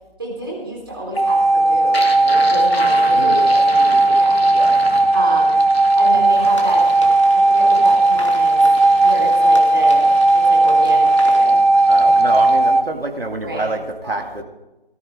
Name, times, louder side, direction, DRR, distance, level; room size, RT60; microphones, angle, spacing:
voice 1, 0.2-4.5 5.1-5.6 5.9-8.6 9.0-10.0 10.5-11.6 13.4-13.7 14.0-14.2, right 1 dB, 25° right, -4 dB, 3.8 m, -28 dB
sound 1, 1.0-12.8, left 2 dB, 75° left, 1.8 m, -35 dB
sound 2, 1.2-12.8, right 2 dB, 40° right, 0.6 m, -15 dB
voice 2, 3.2-3.5 4.5-4.8 11.9-14.4, right 2 dB, 70° right, 3 dB, 2.5 m, -26 dB
sound 3, 6.4-11.5, left 1 dB, 30° left, 1.7 m, -38 dB
19.0 x 13.5 x 3.6 m, 0.99 s
figure-of-eight pair, 175°, 30 cm